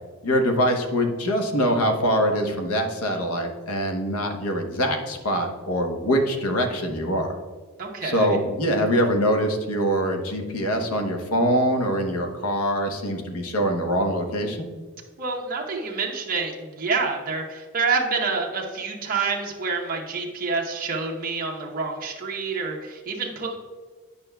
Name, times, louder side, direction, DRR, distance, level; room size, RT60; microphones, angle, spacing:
voice 1, 0.2-7.3 8.0-14.7, equal, 85° left, 4 dB, 1.0 m, -24 dB
voice 2, 7.8-8.4 15.2-23.6, right 4 dB, 40° right, -1 dB, 0.8 m, -27 dB
9.3 x 5.5 x 2.3 m, 1.5 s
head